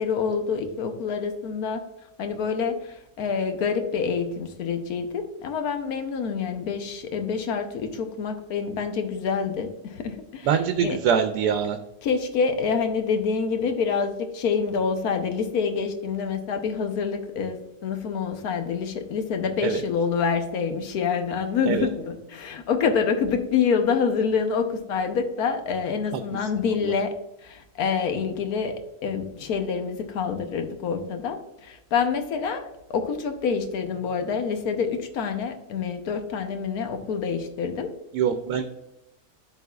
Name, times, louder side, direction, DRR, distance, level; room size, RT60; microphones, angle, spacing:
voice 1, 0.0-1.8 2.2-11.0 12.0-17.6 17.8-27.2 27.4-37.9, left 6 dB, 75° left, 6 dB, 1.2 m, -27 dB
voice 2, 10.4-11.8 19.6-19.8 21.7-21.9 26.1-26.2 26.8-26.9 38.1-38.6, right 8 dB, 90° right, 7 dB, 1.1 m, -24 dB
11.5 x 4.0 x 2.3 m, 0.87 s
omnidirectional pair, 1.6 m